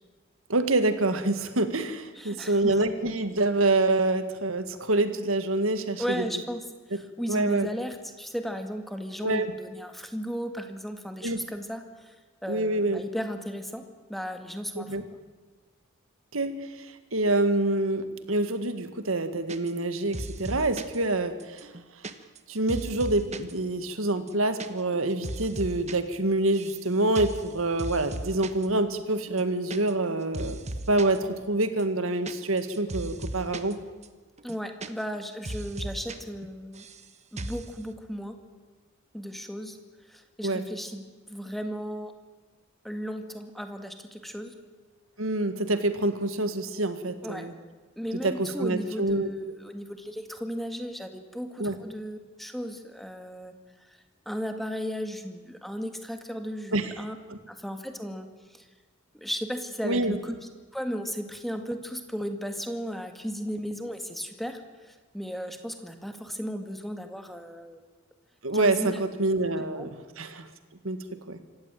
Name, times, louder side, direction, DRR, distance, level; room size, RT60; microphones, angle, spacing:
voice 1, 0.5-6.2 7.3-7.7 9.2-9.5 11.2-11.4 12.5-13.0 14.8-15.0 16.3-21.7 22.5-30.6 30.9-33.8 40.4-40.6 45.2-47.5 48.2-49.3 51.6-51.8 56.7-56.9 57.3-57.4 59.8-60.2 68.4-70.5 70.8-71.4, right 2 dB, 70° right, 9 dB, 2.0 m, -26 dB
voice 2, 2.1-2.8 6.0-12.2 12.4-15.0 34.4-36.8 37.3-38.4 39.1-39.8 40.0-42.1 42.8-44.6 47.2-47.5 48.0-53.5 53.8-57.2 57.5-58.7 59.1-60.3 60.7-67.8 68.5-69.0 69.8-69.9, equal, ahead, 6 dB, 2.0 m, -35 dB
sound 1, 19.5-19.9 20.1-21.0 21.4-23.5 23.8-23.9 24.2-24.7 24.9-25.9 26.2-26.8 27.1-27.5 27.8-28.7 28.9-29.0 29.3-30.1 30.3-31.2 31.6-33.7 34.0-34.1 34.4-35.2 35.4-36.2 36.4-37.0 37.4-37.7, right 1 dB, 35° right, 1.3 m, -37 dB
26.0 x 15.0 x 9.2 m, 1.3 s
head